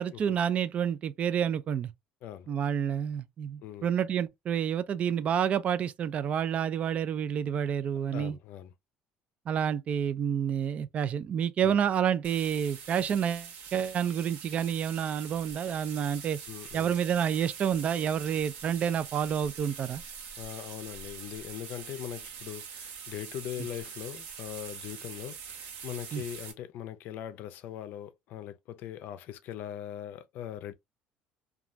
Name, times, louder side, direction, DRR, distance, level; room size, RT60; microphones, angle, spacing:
voice 1, 0.0-1.9 2.5-8.4 9.5-16.4 16.7-20.0 26.1-26.2, right 8 dB, 45° right, 0.3 m, -29 dB
voice 2, 8.1-8.7 11.6-11.8 16.5-16.9 20.4-30.7, left 11 dB, 65° left, 0.4 m, -41 dB
sound 1, 12.2-26.5, right 7 dB, 75° right, 0.9 m, -44 dB
2.5 x 2.3 x 3.0 m
cardioid pair, 110°, 3 cm